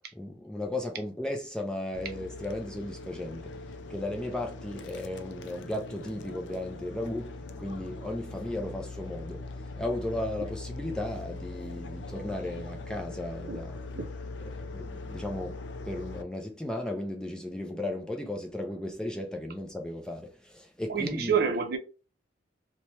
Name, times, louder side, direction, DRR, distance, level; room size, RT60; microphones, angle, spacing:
voice 1, 0.2-3.5 3.9-9.5 9.8-13.8 14.4-21.4, left 1 dB, 5° left, 0.4 m, -35 dB
sound 1, 1.9-16.2, left 3 dB, 70° left, 0.4 m, -41 dB
voice 2, 20.9-21.8, right 6 dB, 55° right, 0.6 m, -28 dB
3.0 x 2.2 x 2.8 m
head